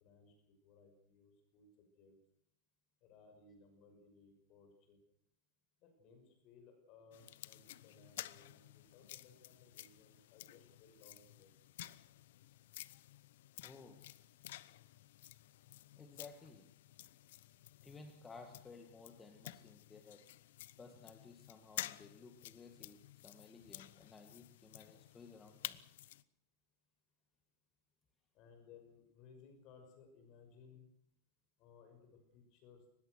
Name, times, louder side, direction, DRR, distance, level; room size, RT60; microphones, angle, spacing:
voice 1, 0.0-2.2 3.0-5.0 5.8-11.6 28.3-30.9 31.6-33.0, left 5 dB, 40° left, 6 dB, 6.0 m, -62 dB
sound 1, 7.1-26.2, left 14 dB, 70° left, 0.9 m, -52 dB
voice 2, 13.6-14.0 16.0-16.7 17.4-17.5 17.8-20.2 20.8-25.8, left 4 dB, 10° left, 5 dB, 1.8 m, -56 dB
23.5 x 20.5 x 6.5 m, 0.67 s
supercardioid pair, 165°, 0 cm